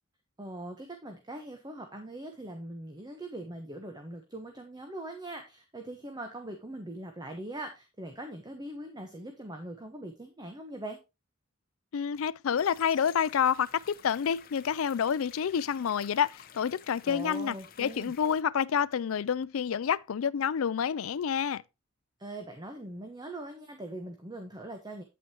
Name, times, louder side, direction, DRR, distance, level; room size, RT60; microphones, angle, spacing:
voice 1, 0.4-11.0 17.0-18.1 22.2-25.0, right 1 dB, 20° right, 1.1 m, -41 dB
voice 2, 11.9-21.6, left 7 dB, 75° left, 0.4 m, -28 dB
sound 1, 12.6-18.4, left 8 dB, 45° left, 0.9 m, -53 dB
8.8 x 8.6 x 2.9 m
head